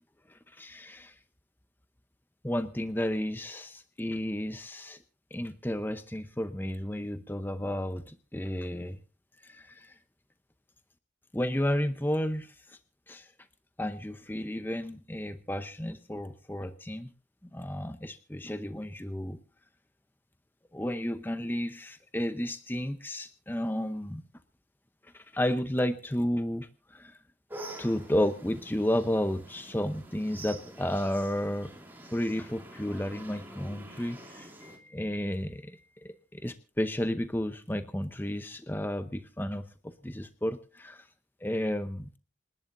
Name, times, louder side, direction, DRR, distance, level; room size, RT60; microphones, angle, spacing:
voice 1, 0.3-1.2 2.4-5.0 5.3-9.0 9.4-10.0 11.3-12.8 13.1-13.3 13.8-17.1 17.5-19.4 20.7-24.2 25.0-27.2 27.8-31.7 32.1-39.7 40.0-41.1 41.4-42.1, left 1 dB, 10° left, 10 dB, 0.7 m, -32 dB
sound 1, 27.5-34.8, right 1 dB, 10° right, 3.0 m, -47 dB
27.5 x 11.5 x 2.6 m, 0.35 s
head